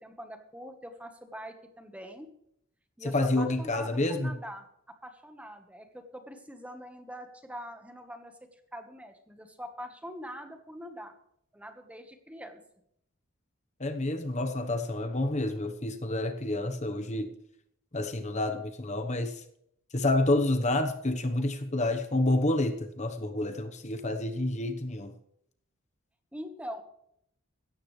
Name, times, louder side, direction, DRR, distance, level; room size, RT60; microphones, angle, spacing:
voice 1, 0.0-2.3 3.0-4.7 5.0-11.1 11.5-12.6 26.3-26.8, equal, 5° right, 6 dB, 1.3 m, -43 dB
voice 2, 3.1-4.3 13.8-17.3 17.9-19.4 19.9-25.1, left 2 dB, 35° left, 7 dB, 1.1 m, -29 dB
16.5 x 13.5 x 3.3 m, 0.73 s
head